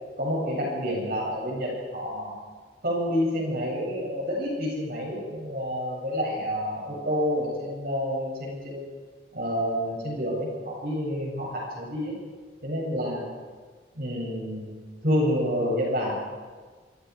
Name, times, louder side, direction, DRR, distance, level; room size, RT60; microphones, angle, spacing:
voice 1, 0.2-2.3 2.8-8.8 9.3-12.2 12.6-13.3 13.9-14.7 15.0-16.1, equal, 55° right, -3 dB, 7.8 m, -28 dB
27.0 x 26.5 x 4.9 m, 1.5 s
head